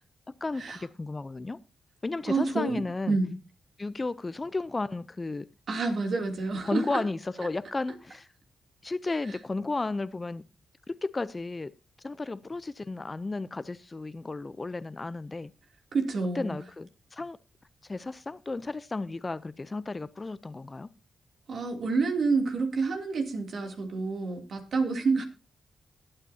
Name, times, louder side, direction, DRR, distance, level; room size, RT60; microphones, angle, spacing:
voice 1, 0.4-1.6 2.0-3.2 3.8-5.5 6.6-8.3 8.8-10.4 10.9-11.7 12.0-15.5 16.4-17.4 17.9-20.9, left 3 dB, 30° left, 0.6 m, -33 dB
voice 2, 2.3-2.8 3.1-3.3 5.7-7.0 15.9-16.6 21.5-25.2, right 4 dB, 65° right, 2.9 m, -28 dB
21.0 x 8.9 x 2.8 m
cardioid pair, 65°, 0 cm